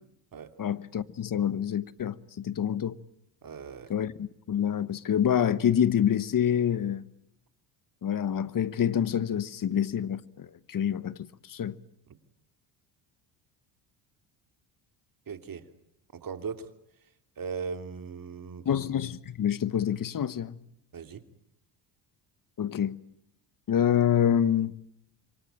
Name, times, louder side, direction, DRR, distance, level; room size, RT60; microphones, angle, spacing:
voice 1, 0.6-2.9 3.9-7.0 8.0-11.2 11.5-11.7 18.6-20.6 22.6-23.0 23.7-24.7, left 9 dB, 40° left, 1.3 m, -27 dB
voice 2, 3.4-3.9 15.3-15.6 16.1-16.6 17.4-18.7 20.9-21.2, right 5 dB, 40° right, 3.0 m, -38 dB
27.5 x 24.0 x 9.0 m
supercardioid pair, 80°, 49 cm